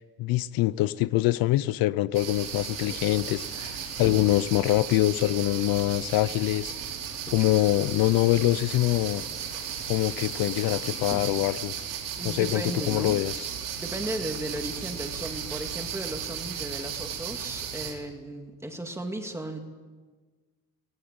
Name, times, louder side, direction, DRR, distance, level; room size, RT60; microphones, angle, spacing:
voice 1, 0.0-6.7 7.3-9.2 9.9-11.7 12.2-13.5, left 16 dB, 75° left, 18 dB, 0.6 m, -24 dB
sound 1, 2.1-17.9, right 8 dB, 65° right, 4.3 m, -35 dB
sound 2, 2.4-12.4, left 3 dB, 20° left, 2.6 m, -46 dB
voice 2, 12.2-13.2 13.8-19.6, right 1 dB, 10° right, 4 dB, 2.0 m, -35 dB
18.0 x 17.5 x 8.9 m, 1.4 s
cardioid pair, 160°, 35 cm